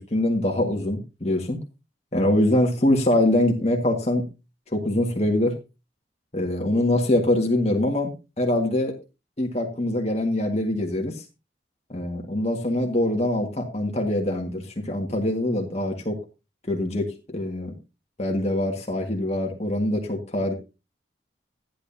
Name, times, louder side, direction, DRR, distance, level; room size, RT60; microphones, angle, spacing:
voice 1, 0.0-1.6 2.1-4.3 4.7-5.6 6.3-8.1 8.4-9.0 9.4-11.2 11.9-16.2 16.7-17.7 18.2-20.5, left 1 dB, 35° left, 1 dB, 1.8 m, -24 dB
13.5 x 10.5 x 2.8 m, 0.28 s
head